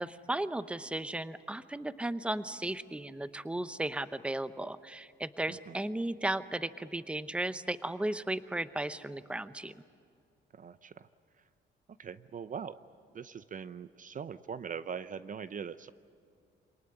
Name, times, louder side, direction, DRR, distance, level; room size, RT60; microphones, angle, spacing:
voice 1, 0.0-9.7, right 1 dB, 5° right, 13 dB, 0.8 m, -35 dB
voice 2, 10.5-11.1 12.0-12.8 13.1-15.9, right 7 dB, 40° right, 14 dB, 0.7 m, -41 dB
27.0 x 19.0 x 9.8 m, 2.3 s
cardioid pair, 90°, 20 cm